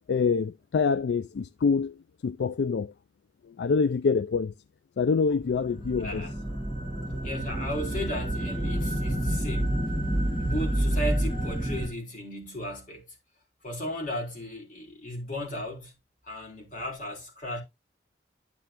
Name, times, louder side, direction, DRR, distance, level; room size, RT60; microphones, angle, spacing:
voice 1, 0.1-1.9 2.2-2.9 3.6-4.5 5.0-6.2, left 5 dB, 75° left, 0.4 m, -25 dB
sound 1, 5.4-11.9, right 1 dB, 25° left, 2.6 m, -29 dB
voice 2, 6.0-6.3 7.2-9.8 10.4-13.2 13.6-15.9 16.2-17.6, equal, 50° left, 3.7 m, -35 dB
11.0 x 5.5 x 2.9 m
head